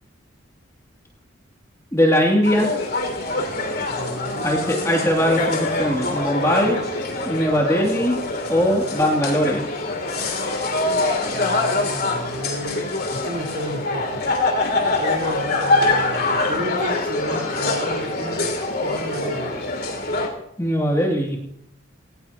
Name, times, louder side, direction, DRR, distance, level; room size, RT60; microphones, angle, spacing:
voice 1, 1.9-2.7 4.4-6.8 7.2-8.2 8.5-9.6 20.6-21.4, equal, 15° left, -1 dB, 2.7 m, -20 dB
sound 1, 2.4-20.3, left 2 dB, 50° left, 2.9 m, -24 dB
voice 2, 3.9-5.0 6.4-6.8 11.3-14.3 15.0-19.6, equal, 65° right, 1 dB, 4.2 m, -32 dB
19.0 x 18.0 x 2.9 m, 0.73 s
head